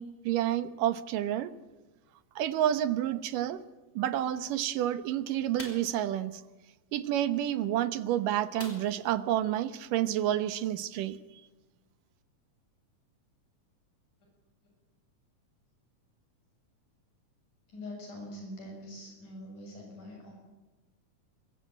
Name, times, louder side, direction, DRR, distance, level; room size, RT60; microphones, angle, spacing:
voice 1, 0.0-1.5 2.4-3.6 4.0-6.4 6.9-11.2, right 11 dB, 85° right, 13 dB, 2.8 m, -29 dB
sound 1, 5.6-6.0 8.6-9.2 9.5-9.6 10.0-10.2, left 1 dB, 20° left, 4.3 m, -44 dB
voice 2, 17.7-20.3, left 1 dB, 70° left, 0 dB, 8.4 m, -44 dB
26.0 x 22.5 x 9.1 m, 1.2 s
omnidirectional pair, 3.7 m